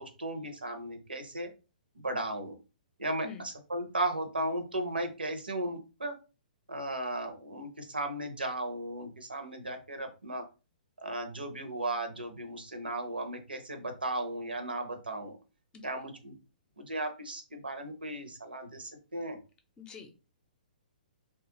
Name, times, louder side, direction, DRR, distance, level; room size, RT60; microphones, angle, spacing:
voice 1, 0.0-1.5 1.9-2.6 3.0-6.2 6.7-10.5 11.0-15.4 15.8-16.3 16.8-19.4, right 1 dB, 90° right, 7 dB, 0.7 m, -36 dB
voice 2, 19.8-20.1, left 6 dB, 15° left, 6 dB, 0.5 m, -45 dB
3.1 x 2.4 x 2.9 m, 0.31 s
hypercardioid pair, 125°, 5 cm